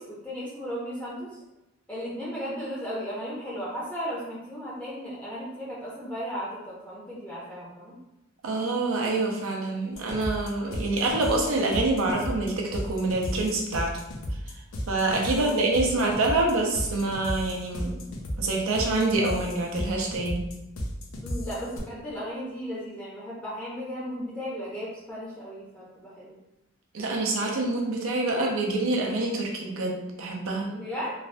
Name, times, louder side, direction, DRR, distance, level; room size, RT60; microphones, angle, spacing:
voice 1, 0.0-1.4 1.9-7.9 15.3-16.1 21.2-26.3 30.7-31.1, equal, 5° left, -8 dB, 0.5 m, -35 dB
voice 2, 8.4-13.9 14.9-18.1 18.4-20.4 26.9-30.7, right 2 dB, 75° right, 0 dB, 0.6 m, -26 dB
sound 1, 9.9-21.8, equal, 65° left, 0.5 m, -34 dB
3.2 x 2.1 x 2.5 m, 0.93 s
head